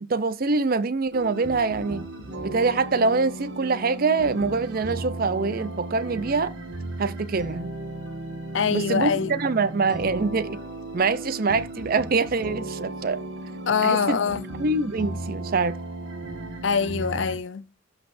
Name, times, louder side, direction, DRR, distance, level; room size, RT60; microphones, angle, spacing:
voice 1, 0.1-2.0 2.4-6.5 7.0-7.7 8.7-10.6 10.9-13.2 13.8-15.8, right 4 dB, 50° right, 0.5 m, -24 dB
sound 1, 1.1-17.4, right 2 dB, 65° right, 1.6 m, -35 dB
voice 2, 8.5-9.3 13.7-14.4 16.6-17.6, left 6 dB, 65° left, 0.6 m, -24 dB
12.5 x 5.5 x 2.6 m
head